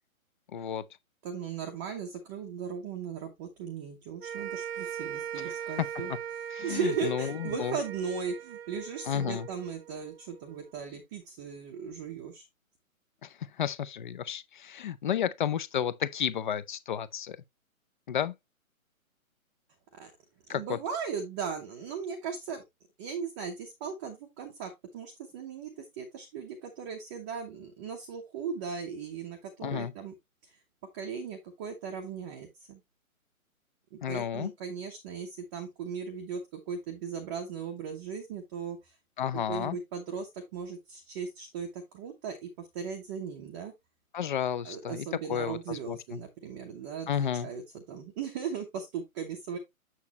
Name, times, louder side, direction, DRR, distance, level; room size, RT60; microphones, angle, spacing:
voice 1, 0.5-0.9 5.4-5.5 6.5-7.8 9.1-9.5 13.2-13.3 13.6-17.4 18.1-18.3 20.5-20.8 29.6-29.9 34.0-34.5 39.2-39.8 44.1-46.2 47.1-47.5, left 9 dB, 35° left, 0.6 m, -32 dB
voice 2, 1.2-6.1 6.6-12.5 19.9-20.1 20.5-22.6 23.0-30.1 30.9-32.8 33.9-38.9 39.3-43.7 44.6-49.6, right 6 dB, 15° right, 0.7 m, -37 dB
sound 1, 4.2-10.6, right 9 dB, 45° right, 0.8 m, -40 dB
7.2 x 6.4 x 2.9 m
hypercardioid pair, 155°, 43 cm